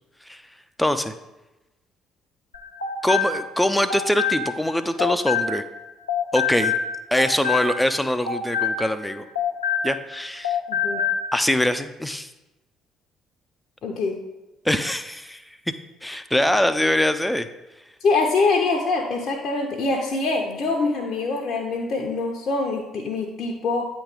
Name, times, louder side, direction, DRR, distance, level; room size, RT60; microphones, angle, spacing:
voice 1, 0.8-1.1 3.0-5.6 6.3-6.7 7.1-9.2 9.8-10.6 11.3-12.3 14.6-15.4 16.0-17.5, left 1 dB, 5° left, 10 dB, 0.5 m, -23 dB
sound 1, 2.5-5.8 6.1-10.2 10.4-11.3, left 6 dB, 85° left, 0.5 m, -26 dB
voice 2, 10.7-11.0 13.8-14.2 18.0-23.9, left 3 dB, 50° left, 0 dB, 0.7 m, -24 dB
8.7 x 3.1 x 5.1 m, 1.0 s
figure-of-eight pair, 50°, 0 cm